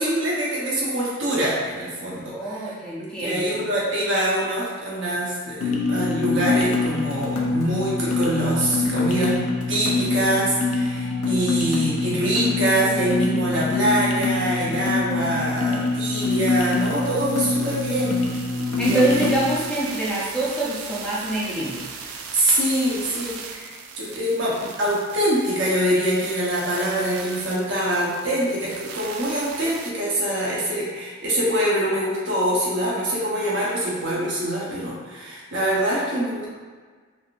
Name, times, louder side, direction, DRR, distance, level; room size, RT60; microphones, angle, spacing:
voice 1, 0.0-18.2 18.8-19.2 22.3-36.5, right 1 dB, 65° right, -6 dB, 0.8 m, -24 dB
voice 2, 2.3-3.6 18.8-21.8, right 2 dB, 5° left, -7 dB, 0.4 m, -25 dB
sound 1, 5.6-19.6, left 3 dB, 85° left, 0.4 m, -24 dB
sound 2, 13.6-13.7 13.9-29.9, right 5 dB, 90° right, 0.3 m, -39 dB
3.5 x 2.5 x 2.4 m, 1.5 s
head